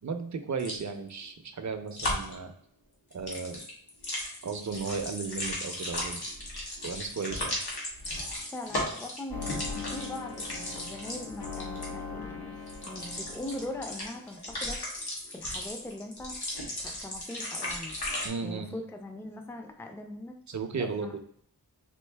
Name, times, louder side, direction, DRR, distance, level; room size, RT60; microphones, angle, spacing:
voice 1, 0.0-2.5 3.1-3.6 4.4-6.2 6.8-7.6 18.2-18.7 20.5-21.1, right 5 dB, 50° right, 7 dB, 0.6 m, -35 dB
sound 1, 0.6-0.8 1.9-2.3 3.1-11.9 12.7-18.3, left 1 dB, 85° left, 1.3 m, -36 dB
voice 2, 8.5-12.6 12.9-16.4 16.8-18.0 18.4-20.4 20.8-21.2, left 1 dB, 5° left, 4 dB, 0.5 m, -41 dB
sound 2, 9.3-14.2, left 5 dB, 65° left, 1.0 m, -40 dB
4.4 x 2.6 x 3.3 m, 0.65 s
wide cardioid pair, 70°, 38 cm